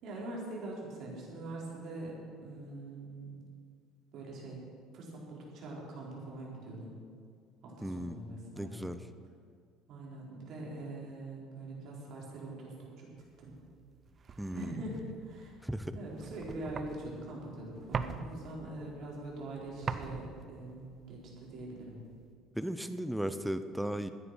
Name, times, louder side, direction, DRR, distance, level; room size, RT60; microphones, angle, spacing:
voice 1, 0.0-3.4 4.1-4.6 4.9-7.0 7.6-8.9 9.9-13.1 13.4-13.5 14.5-15.6 15.9-22.0, right 2 dB, 55° right, -3 dB, 4.3 m, -43 dB
voice 2, 7.8-8.2 8.5-9.0 14.4-14.8 15.6-16.0 22.5-24.1, equal, 5° right, 11 dB, 0.8 m, -36 dB
sound 1, 13.4-22.3, right 5 dB, 40° right, 0.7 m, -43 dB
13.0 x 10.0 x 6.3 m, 2.2 s
hypercardioid pair, 65°, 0 cm